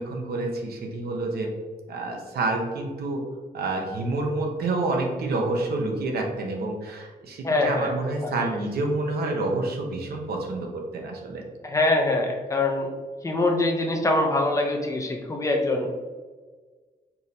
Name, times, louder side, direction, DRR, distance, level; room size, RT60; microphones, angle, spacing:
voice 1, 0.0-1.5 1.9-3.2 3.5-11.4, right 2 dB, 90° right, 1 dB, 0.9 m, -28 dB
voice 2, 7.4-7.9 8.4-8.5 11.6-12.9 13.2-15.9, left 2 dB, 20° left, 2 dB, 0.5 m, -24 dB
4.6 x 3.3 x 2.8 m, 1.4 s
wide cardioid pair, 170°, 16 cm